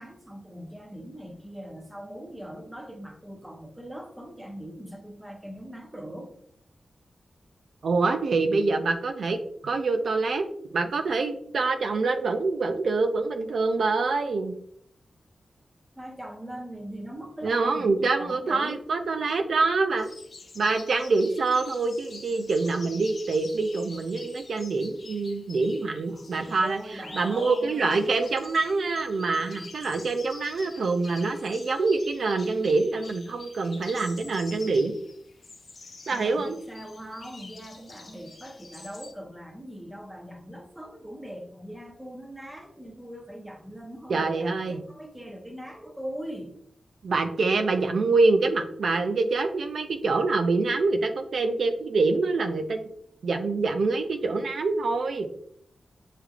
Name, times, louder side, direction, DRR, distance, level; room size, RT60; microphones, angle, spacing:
voice 1, 0.0-6.3 16.0-18.9 26.1-26.3 26.6-28.1 35.8-46.6, equal, 10° right, 2 dB, 0.7 m, -41 dB
voice 2, 7.8-9.4 9.6-10.4 10.7-14.5 17.4-20.1 20.6-35.0 36.1-36.6 44.1-44.8 47.0-52.8 53.2-55.3, right 3 dB, 70° right, 6 dB, 0.4 m, -25 dB
sound 1, 20.0-39.1, left 3 dB, 50° left, 0.7 m, -47 dB
6.5 x 3.2 x 2.4 m, 0.68 s
wide cardioid pair, 130°, 0 cm